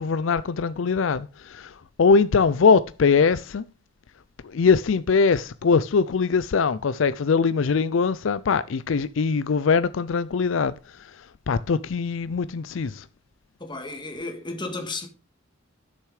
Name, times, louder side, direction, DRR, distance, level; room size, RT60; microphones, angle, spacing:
voice 1, 0.0-3.6 4.4-13.1, left 5 dB, 75° left, 0.4 m, -22 dB
voice 2, 13.6-15.1, left 2 dB, 25° left, 2.0 m, -33 dB
11.5 x 6.8 x 4.9 m
head